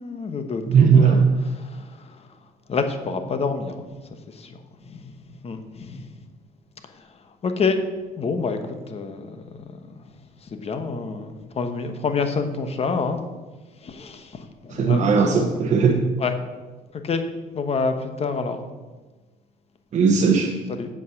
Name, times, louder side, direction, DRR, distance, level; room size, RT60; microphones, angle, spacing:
voice 1, 0.0-1.2 1.6-2.3 2.7-3.9 4.3-4.6 4.8-6.1 6.9-7.0 7.4-7.8 8.2-8.6 8.9-9.8 10.4-13.2 13.8-15.5 16.2-16.3 16.9-17.2 17.5-18.6 20.7-20.9, left 4 dB, 35° left, 7 dB, 1.1 m, -28 dB
voice 2, 0.7-1.3 14.7-16.0 19.9-20.6, right 6 dB, 45° right, 1 dB, 1.1 m, -17 dB
8.4 x 7.3 x 5.8 m, 1.3 s
cardioid pair, 110°, 17 cm